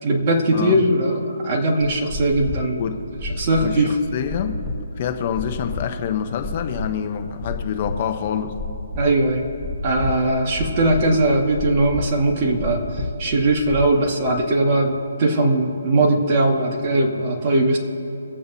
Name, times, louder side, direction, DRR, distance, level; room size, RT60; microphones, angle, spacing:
voice 1, 0.0-2.8 3.4-3.9 9.0-9.4 9.8-12.8 13.2-17.8, right 2 dB, 30° right, 0 dB, 1.8 m, -19 dB
sound 1, 2.0-13.9, left 2 dB, ahead, 1.6 m, -32 dB
voice 2, 3.6-4.6 5.0-8.6, left 8 dB, 35° left, 7 dB, 0.8 m, -26 dB
24.0 x 8.5 x 2.8 m, 2.9 s
hypercardioid pair, 160°, 0 cm